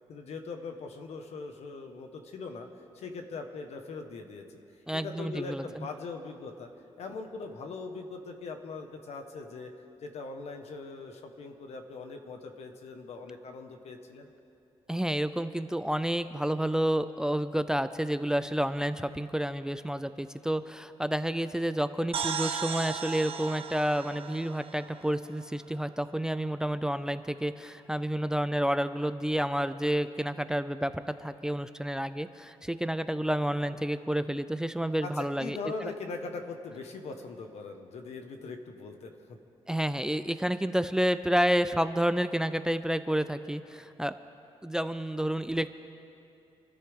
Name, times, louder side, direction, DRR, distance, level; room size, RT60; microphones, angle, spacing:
voice 1, 0.1-2.7 2.9-4.5 4.9-6.7 7.0-9.7 10.0-14.3 35.0-39.1, left 4 dB, 80° left, 5 dB, 1.4 m, -41 dB
voice 2, 4.9-5.9 14.9-35.9 39.7-44.1 44.6-45.7, equal, 5° right, 12 dB, 0.4 m, -30 dB
sound 1, 22.1-25.8, right 7 dB, 60° right, 0.9 m, -36 dB
27.5 x 13.5 x 3.6 m, 2.7 s
wide cardioid pair, 140°, 11 cm